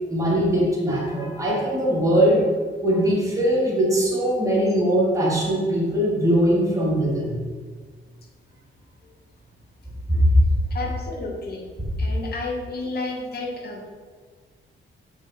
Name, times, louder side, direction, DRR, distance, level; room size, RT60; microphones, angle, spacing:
voice 1, 0.1-2.4 2.8-7.4 10.1-10.2, equal, 15° right, -5 dB, 2.6 m, -21 dB
voice 2, 9.8-10.2 10.5-11.7 12.0-13.9, left 3 dB, 50° left, -2 dB, 1.9 m, -32 dB
6.6 x 6.5 x 5.9 m, 1.5 s
wide cardioid pair, 135°, 21 cm